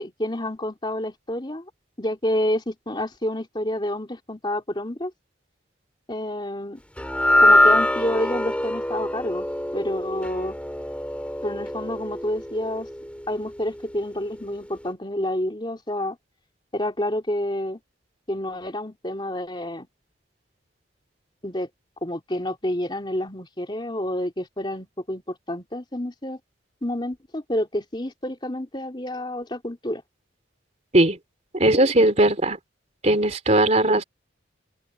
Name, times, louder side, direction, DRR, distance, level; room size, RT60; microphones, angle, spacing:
voice 1, 0.0-1.6 2.0-5.1 6.1-6.8 7.4-9.5 9.7-10.6 11.4-12.9 13.3-16.2 16.7-17.8 18.3-19.9 21.4-21.7 22.0-26.4 26.8-30.0, left 1 dB, 25° left, 3.1 m, -29 dB
sound 1, 7.0-13.4, left 1 dB, 5° left, 4.7 m, -23 dB
voice 2, 31.5-32.6 33.0-34.0, right 1 dB, 35° right, 3.3 m, -18 dB
open air
head